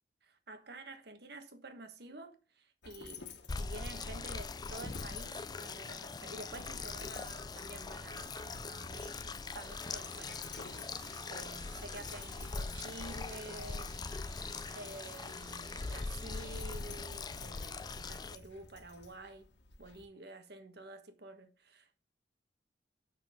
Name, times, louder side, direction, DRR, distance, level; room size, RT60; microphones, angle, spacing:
voice 1, 0.2-3.2 3.6-14.0 14.3-19.5 19.8-22.0, right 2 dB, 60° right, 1.3 m, -50 dB
Dog, 2.8-20.0, left 5 dB, 75° left, 1.5 m, -53 dB
sound 1, 3.5-18.4, left 4 dB, 20° left, 0.4 m, -42 dB
sound 2, 8.9-18.0, right 6 dB, 85° right, 1.2 m, -57 dB
6.9 x 6.1 x 4.7 m
head